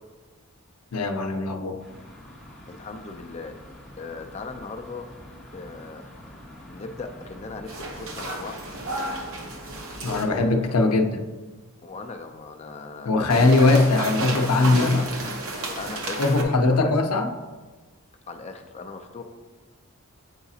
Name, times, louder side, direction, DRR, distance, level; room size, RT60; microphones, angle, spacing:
voice 1, 0.9-1.8 10.0-11.2 13.1-15.1 16.2-17.3, left 3 dB, 85° left, 4 dB, 0.6 m, -20 dB
sound 1, 1.8-10.4, left 1 dB, ahead, 1.3 m, -46 dB
voice 2, 2.7-3.6 4.0-5.1 5.5-6.0 6.6-7.7 8.0-8.6 9.9-10.7 11.8-13.9 15.8-16.9 18.3-19.2, left 3 dB, 30° left, 5 dB, 0.4 m, -38 dB
sound 2, 7.7-10.2 13.3-16.4, right 2 dB, 65° right, 0.9 m, -32 dB
8.0 x 4.8 x 2.8 m, 1.3 s
head